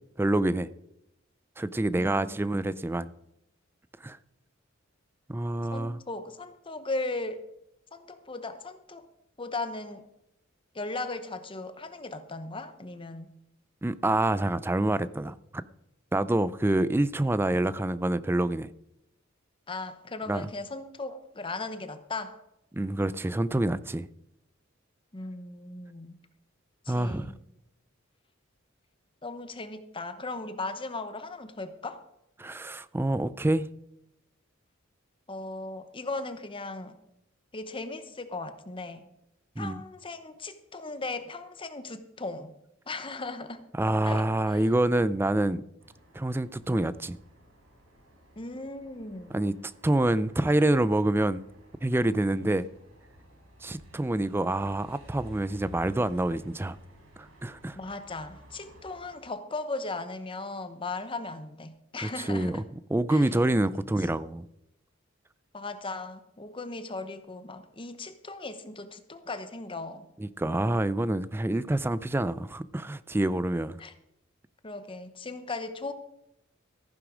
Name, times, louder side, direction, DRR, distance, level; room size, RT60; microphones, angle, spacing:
voice 1, 0.2-0.7 1.6-3.1 4.0-4.2 5.3-6.0 13.8-15.6 16.1-18.7 20.3-20.5 22.7-24.1 26.9-27.3 32.4-33.7 39.6-39.8 43.7-45.6 46.1-47.2 49.3-51.4 51.8-52.7 53.6-56.8 57.4-57.8 62.0-62.6 62.9-64.5 70.2-73.8, right 1 dB, 10° right, 0.4 m, -27 dB
voice 2, 1.9-2.7 5.7-7.4 7.9-9.1 9.4-10.0 10.7-13.3 19.7-22.4 25.1-26.1 26.9-27.4 29.2-32.0 35.3-37.0 37.5-39.0 39.6-42.5 42.9-43.7 44.0-44.7 48.4-49.4 57.8-62.6 63.1-63.3 65.5-70.1 73.8-73.9 74.6-75.9, left 3 dB, 25° left, 0.9 m, -37 dB
sound 1, 45.8-59.2, equal, 90° right, 4.1 m, -54 dB
14.5 x 9.9 x 5.0 m
head